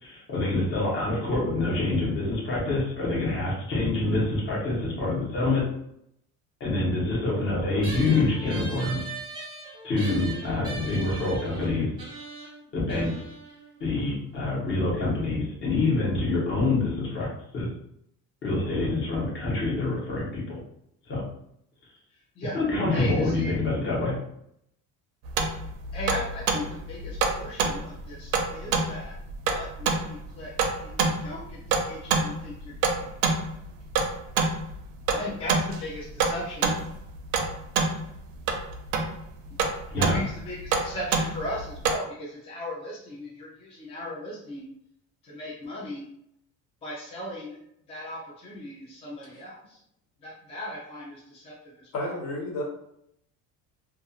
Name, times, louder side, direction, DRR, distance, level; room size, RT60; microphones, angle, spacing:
voice 1, 0.0-5.7 6.6-9.1 9.8-11.9 12.7-13.1 13.8-17.3 17.5-17.7 18.4-20.6 21.1-21.2 22.5-24.2 39.9-40.2, left 2 dB, 35° left, -5 dB, 1.0 m, -26 dB
sound 1, 7.8-14.6, right 3 dB, 15° right, 0.7 m, -41 dB
voice 2, 22.1-22.6 22.9-23.5 25.9-29.2 29.5-30.5 30.8-33.1 35.1-36.7 40.0-44.7 45.2-46.1 46.8-47.6 47.9-49.8 50.2-52.2, left 1 dB, 15° left, -5 dB, 0.4 m, -37 dB
sound 2, 25.2-42.0, right 4 dB, 90° right, 0.5 m, -27 dB
voice 3, 51.9-52.6, left 1 dB, 65° left, -3 dB, 1.0 m, -31 dB
2.5 x 2.4 x 2.7 m, 0.74 s
cardioid pair, 165°, 35 cm